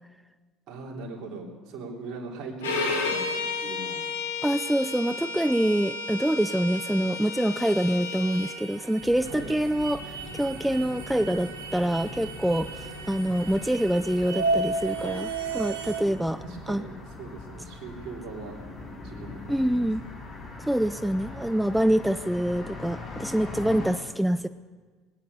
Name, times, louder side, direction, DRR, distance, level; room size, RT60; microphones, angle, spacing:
voice 1, 0.7-4.0 5.1-5.3 9.2-9.5 16.4-18.6 19.0-19.9, right 3 dB, 60° right, 0 dB, 3.2 m, -40 dB
Bowed string instrument, 2.6-8.6, left 3 dB, 90° left, 2.1 m, -32 dB
voice 2, 4.4-16.8 19.5-20.0 20.7-24.5, right 1 dB, 5° right, 12 dB, 0.5 m, -26 dB
sound 1, 6.7-16.0, right 3 dB, 85° right, 1.7 m, -34 dB
sound 2, 9.0-23.9, left 3 dB, 40° left, 5.0 m, -42 dB
20.5 x 9.7 x 6.8 m, 1.4 s
hypercardioid pair, 70°, 0 cm